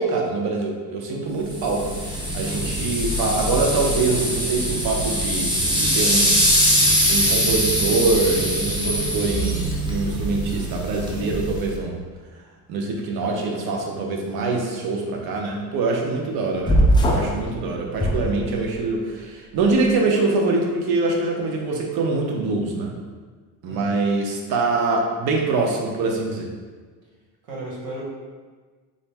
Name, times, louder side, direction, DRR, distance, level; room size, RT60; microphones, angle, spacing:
voice 1, 0.0-6.6 7.1-12.0 12.7-16.8 17.0-22.9 23.6-26.5, right 3 dB, 60° right, 1 dB, 0.8 m, -24 dB
sound 1, 1.5-11.8, equal, 10° right, 0.8 m, -22 dB
sound 2, 16.7-17.4 17.9-18.9, right 1 dB, 10° left, 0.3 m, -19 dB
voice 2, 27.4-28.0, right 1 dB, 75° right, -4 dB, 1.3 m, -34 dB
3.9 x 2.0 x 3.4 m, 1.4 s
supercardioid pair, 90°, 42 cm